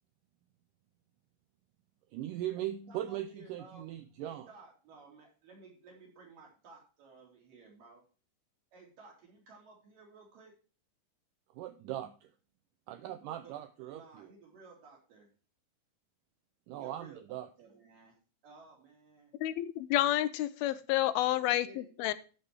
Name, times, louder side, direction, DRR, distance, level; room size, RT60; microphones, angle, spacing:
voice 1, 2.1-4.5 11.5-12.3 12.9-14.3 16.7-17.5, right 12 dB, 80° right, 10 dB, 1.9 m, -39 dB
voice 2, 2.8-3.9 4.2-8.0 8.7-10.5 13.0-13.2 13.4-13.6 13.9-15.3 16.7-18.2 18.4-19.3 21.1-21.9, right 3 dB, 60° right, -2 dB, 5.2 m, -56 dB
voice 3, 19.4-22.1, left 14 dB, 80° left, 14 dB, 2.4 m, -30 dB
13.0 x 5.4 x 4.8 m, 0.36 s
omnidirectional pair, 4.4 m